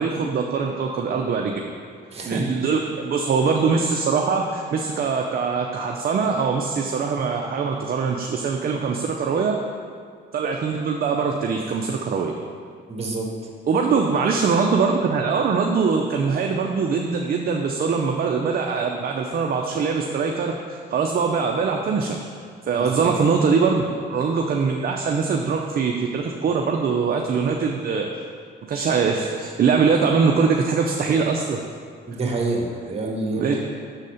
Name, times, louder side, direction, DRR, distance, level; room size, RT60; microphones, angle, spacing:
voice 1, 0.0-1.5 2.3-9.6 10.3-12.3 13.7-22.2 22.7-28.1 28.6-31.6 33.3-33.5, right 5 dB, 50° right, 2 dB, 0.6 m, -22 dB
voice 2, 2.1-2.5 12.9-13.3 22.7-23.1 32.1-33.6, right 2 dB, 30° right, -1 dB, 1.5 m, -27 dB
6.4 x 4.1 x 6.4 m, 2.1 s
cardioid pair, 90°, 20 cm